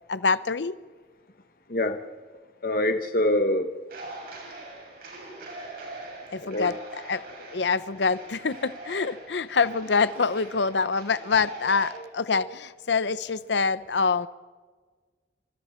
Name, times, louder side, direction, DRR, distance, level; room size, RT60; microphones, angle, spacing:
voice 1, 0.1-0.8 6.3-6.8 7.1-14.3, left 4 dB, 85° left, 15 dB, 0.8 m, -25 dB
voice 2, 1.7-2.0 2.6-3.7 6.4-6.8 12.0-12.5 13.0-13.1, left 1 dB, 55° left, 7 dB, 1.2 m, -26 dB
sound 1, 3.9-11.9, right 2 dB, 55° right, 7.3 m, -42 dB
28.0 x 25.5 x 4.5 m, 1.5 s
head